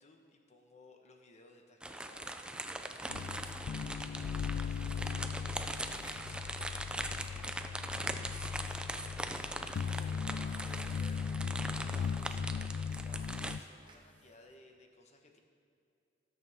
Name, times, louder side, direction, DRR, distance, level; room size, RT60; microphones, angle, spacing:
voice 1, 0.0-15.4, left 2 dB, 40° left, 3 dB, 1.0 m, -60 dB
sound 1, 1.8-13.6, right 1 dB, 5° right, 0.4 m, -41 dB
sound 2, 2.9-14.5, right 2 dB, 25° right, 1.1 m, -62 dB
sound 3, 3.1-13.6, left 6 dB, 90° left, 0.3 m, -38 dB
18.0 x 6.8 x 3.5 m, 2.5 s
head